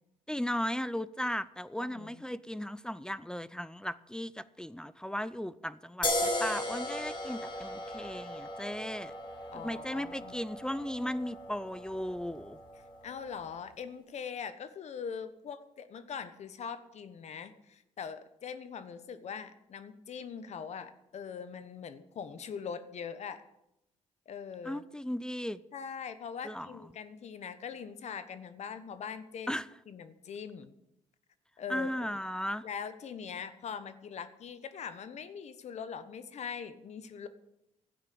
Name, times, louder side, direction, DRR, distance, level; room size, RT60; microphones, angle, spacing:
voice 1, 0.3-9.1 9.6-12.6 24.6-25.6 26.4-26.7 29.5-29.7 31.7-32.6, equal, 5° left, 17 dB, 0.5 m, -36 dB
voice 2, 1.8-2.2 9.5-10.3 13.0-23.4 24.3-24.8 25.7-29.5 29.9-30.7 31.6-31.9 32.6-37.3, left 7 dB, 65° left, 12 dB, 1.2 m, -42 dB
sound 1, 6.0-13.3, left 1 dB, 40° left, 4.3 m, -37 dB
12.5 x 9.6 x 8.6 m, 0.85 s
cardioid pair, 85°, 12 cm